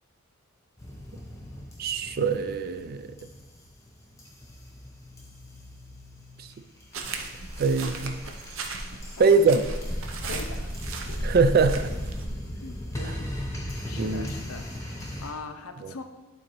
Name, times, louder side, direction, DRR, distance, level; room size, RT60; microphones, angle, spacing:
sound 1, 0.8-15.3, left 1 dB, 15° left, 0.9 m, -39 dB
voice 1, 1.8-3.1 6.4-6.5 7.6-8.2 9.2-9.6 11.2-12.0 13.9-14.3 15.8-15.9, right 4 dB, 45° right, 11 dB, 0.3 m, -22 dB
sound 2, 6.9-12.3, right 2 dB, 65° right, 0.7 m, -34 dB
voice 2, 10.3-11.3 12.6-13.3 13.9-14.7 15.2-16.0, left 4 dB, 80° left, 7 dB, 0.6 m, -41 dB
11.5 x 4.1 x 3.0 m, 1.2 s
head